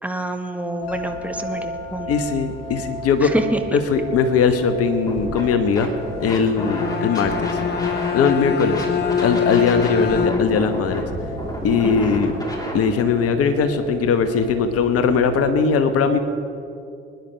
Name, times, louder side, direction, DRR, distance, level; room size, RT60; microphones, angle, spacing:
voice 1, 0.0-2.1 3.2-3.6 11.8-12.1, right 1 dB, 5° right, 4 dB, 1.3 m, -26 dB
sound 1, 0.8-15.5, left 1 dB, 80° left, 1.6 m, -36 dB
voice 2, 2.1-3.3 3.7-5.9 6.2-7.5 8.1-8.8 9.2-11.0 11.6-12.3 12.7-16.2, left 5 dB, 55° left, 9 dB, 1.2 m, -20 dB
Scratching (performance technique), 5.0-5.4 5.7-8.3 8.6-12.8, equal, 15° left, 3.6 m, -31 dB
Bowed string instrument, 6.4-10.7, left 7 dB, 35° left, 0.8 m, -24 dB
25.5 x 10.5 x 3.4 m, 2.5 s
figure-of-eight pair, 50°, 29 cm